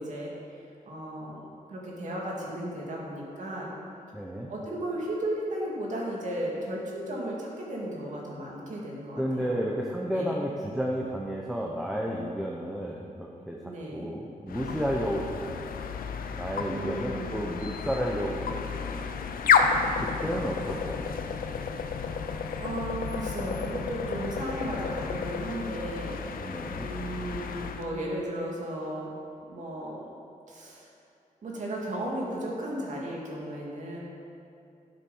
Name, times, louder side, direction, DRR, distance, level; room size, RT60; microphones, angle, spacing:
voice 1, 0.0-3.7 4.5-9.6 10.1-10.3 13.6-14.1 16.7-17.3 22.0-26.2 26.8-29.1 29.4-30.1 30.5-30.9 31.4-34.0, right 1 dB, 60° right, -3 dB, 2.4 m, -35 dB
voice 2, 4.1-4.5 9.2-15.6 16.3-19.1 20.0-21.2 26.4-26.9, equal, 5° right, -2 dB, 0.8 m, -32 dB
sound 1, 14.5-27.9, left 6 dB, 85° left, 0.7 m, -31 dB
12.0 x 7.3 x 5.6 m, 2.6 s
wide cardioid pair, 165°, 14 cm